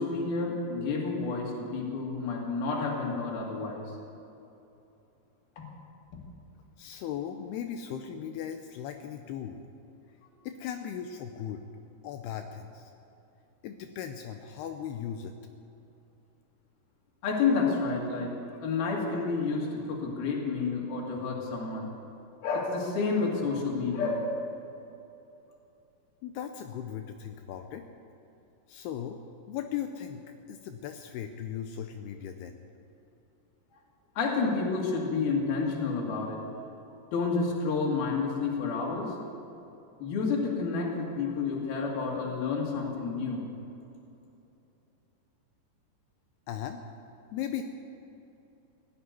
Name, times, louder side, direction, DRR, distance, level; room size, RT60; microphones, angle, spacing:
voice 1, 0.0-3.9 5.6-5.7 17.2-18.3 18.6-21.9 22.4-24.4 34.2-36.4 37.1-39.1 40.0-43.4, left 4 dB, 60° left, -2 dB, 4.1 m, -30 dB
voice 2, 6.8-9.6 10.4-11.6 12.0-12.9 13.6-15.4 26.2-27.9 28.7-29.2 29.5-30.2 30.5-32.6 46.5-46.8 47.3-47.6, left 9 dB, 80° left, 6 dB, 2.5 m, -37 dB
17.0 x 8.7 x 9.5 m, 2.8 s
omnidirectional pair, 5.0 m